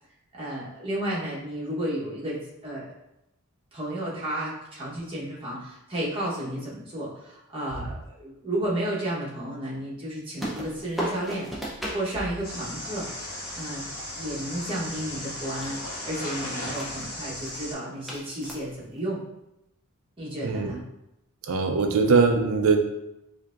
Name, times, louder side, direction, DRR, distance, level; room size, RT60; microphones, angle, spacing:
voice 1, 0.3-2.9 3.7-11.5 11.9-13.1 13.5-13.8 14.1-19.2 20.2-20.8, right 1 dB, 25° right, -7 dB, 1.0 m, -32 dB
sound 1, 10.4-12.1 14.4-15.3 15.6-15.9 16.5-17.1 17.4-17.5 18.0-19.0, right 1 dB, ahead, 0.5 m, -35 dB
sound 2, 12.4-17.7, left 1 dB, 40° left, 1.4 m, -36 dB
voice 2, 21.5-22.8, right 4 dB, 70° right, 5 dB, 0.4 m, -21 dB
4.5 x 2.7 x 2.4 m, 0.87 s
head